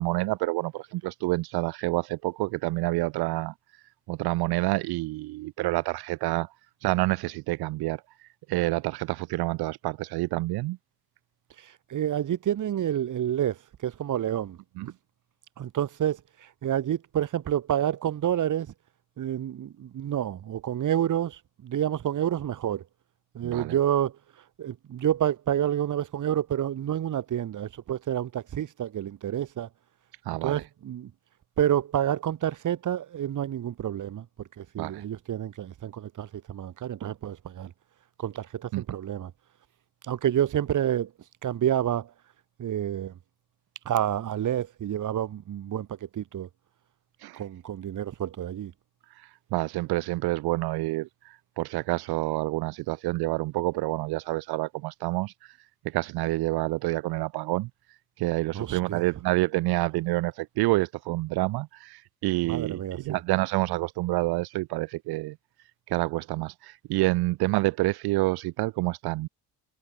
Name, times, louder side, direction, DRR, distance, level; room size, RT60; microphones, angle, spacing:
voice 1, 0.0-3.5 4.1-6.5 6.8-8.0 8.5-10.8 14.8-14.9 23.4-23.7 30.3-30.6 34.8-35.0 38.7-38.8 47.2-47.4 49.2-55.3 55.8-57.7 58.2-65.4 65.9-69.3, right 20 dB, 75° right, 0.6 m, -28 dB
voice 2, 11.6-14.6 15.6-18.7 19.2-22.8 23.3-24.2 24.6-29.7 30.4-31.1 31.6-34.3 34.6-37.7 38.2-39.3 40.1-41.1 41.4-42.1 42.6-43.1 43.8-45.9 46.1-46.5 47.3-48.7 58.5-59.0 62.4-63.2, right 10 dB, 50° right, 1.2 m, -29 dB
supercardioid pair, 70°, 38 cm